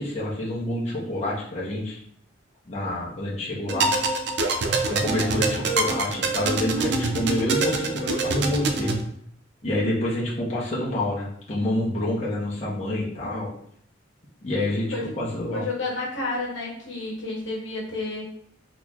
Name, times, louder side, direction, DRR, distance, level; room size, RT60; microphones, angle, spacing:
voice 1, 0.0-2.0 2.7-3.9 4.9-8.9 9.6-13.5 14.4-15.6, left 1 dB, 35° left, -6 dB, 0.9 m, -27 dB
sound 1, 3.7-9.0, right 3 dB, 65° right, 0.4 m, -25 dB
voice 2, 15.5-18.3, left 2 dB, 75° left, -3 dB, 1.0 m, -30 dB
3.8 x 2.9 x 2.4 m, 0.64 s
head